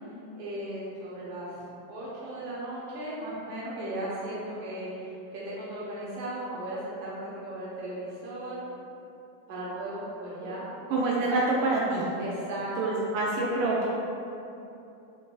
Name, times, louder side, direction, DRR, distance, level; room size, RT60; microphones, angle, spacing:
voice 1, 0.3-1.6 1.9-8.6 9.5-10.7 11.0-11.7 12.2-13.0, right 1 dB, 60° right, -7 dB, 1.4 m, -36 dB
voice 2, 10.9-12.1 12.8-13.9, right 2 dB, 85° right, -4 dB, 1.3 m, -26 dB
6.9 x 2.6 x 2.2 m, 2.8 s
omnidirectional pair, 2.1 m